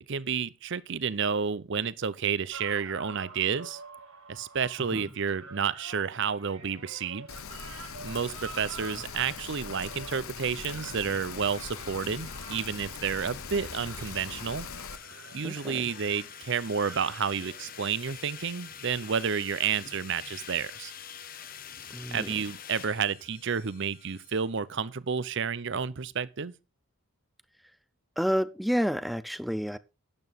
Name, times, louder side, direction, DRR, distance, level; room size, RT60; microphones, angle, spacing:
voice 1, 0.1-3.8 4.3-7.3 8.0-14.7 15.3-20.9 22.1-26.5, right 6 dB, 55° right, 0.7 m, -30 dB
sound 1, 2.5-18.1 19.6-19.7, right 4 dB, 75° right, 4.9 m, -48 dB
Rain, 7.3-15.0, left 6 dB, 75° left, 0.9 m, -41 dB
sound 2, 7.7-24.5, left 7 dB, 40° left, 1.0 m, -47 dB
voice 2, 15.4-15.8 21.9-22.4 28.2-29.8, equal, ahead, 0.5 m, -29 dB
12.0 x 9.1 x 4.1 m
head